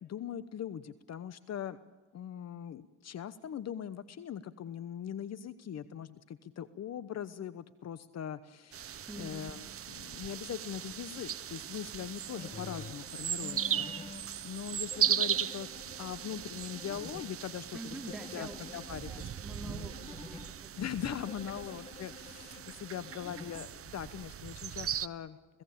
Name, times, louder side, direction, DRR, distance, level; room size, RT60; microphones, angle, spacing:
voice 1, 0.0-1.8 2.1-15.7 16.0-17.8 18.3-19.2 19.6-19.9 20.8-25.4, left 9 dB, 60° left, 15 dB, 1.0 m, -41 dB
sound 1, 8.7-25.1, right 9 dB, 50° right, 0.9 m, -38 dB
voice 2, 9.1-9.5 17.7-20.7 21.4-21.6, right 1 dB, ahead, 2 dB, 4.5 m, -46 dB
sound 2, 12.3-14.2 14.9-17.3 18.1-20.5 21.3-23.7, left 4 dB, 20° left, 1.4 m, -49 dB
29.5 x 17.0 x 8.6 m, 1.2 s
cardioid pair, 90°, 30 cm